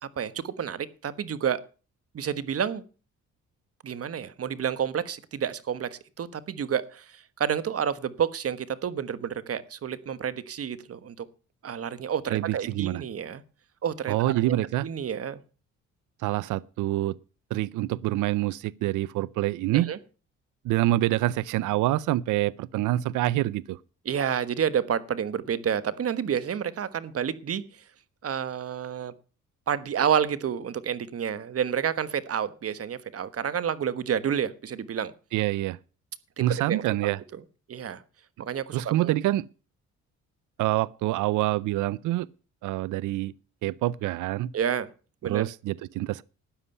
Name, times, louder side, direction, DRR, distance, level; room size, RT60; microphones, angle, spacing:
voice 1, 0.0-1.6 2.1-2.8 3.8-11.3 11.6-13.4 13.8-14.6 14.8-15.4 19.7-20.0 24.0-27.8 28.2-29.1 29.7-35.1 36.4-37.4 37.7-38.0 38.4-39.1 44.5-44.9 45.2-45.5, right 8 dB, 50° right, 1.3 m, -29 dB
voice 2, 12.3-13.0 14.1-14.9 16.2-17.2 17.5-19.9 20.6-23.8 35.3-35.8 36.4-37.2 38.7-39.4 40.6-42.3 42.6-43.3 43.6-44.5 45.2-46.2, right 15 dB, 80° right, 0.5 m, -26 dB
13.0 x 9.8 x 5.5 m
cardioid pair, 90°, 30 cm